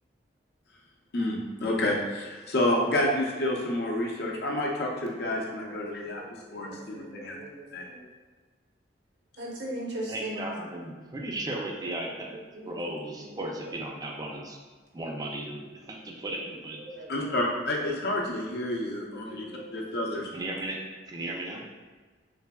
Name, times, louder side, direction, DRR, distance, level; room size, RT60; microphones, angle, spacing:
voice 1, 1.1-6.2 6.5-7.4 7.7-7.8 17.1-19.4 19.7-20.3, left 1 dB, 60° left, -1 dB, 0.6 m, -29 dB
voice 2, 6.1-8.1 9.4-10.5 12.2-12.9 13.2-13.4 13.9-14.0 15.0-15.1 16.2-16.5 16.8-17.4 19.1-20.0, right 1 dB, 65° right, -3 dB, 0.8 m, -41 dB
voice 3, 10.1-12.4 12.6-14.6 14.9-16.8 20.3-20.8 21.1-21.6, right 1 dB, 20° right, 0 dB, 0.4 m, -35 dB
3.4 x 3.3 x 2.2 m, 1.4 s
head